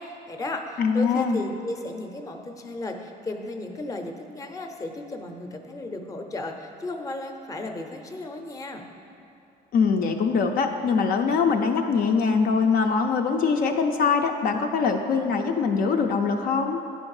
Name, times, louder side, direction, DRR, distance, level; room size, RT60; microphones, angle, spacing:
voice 1, 0.0-8.8, left 2 dB, 20° left, 5 dB, 0.6 m, -34 dB
voice 2, 0.8-1.4 9.7-16.8, left 5 dB, 60° left, 4 dB, 0.5 m, -23 dB
10.0 x 4.4 x 4.8 m, 2.7 s
cardioid pair, 110°, 17 cm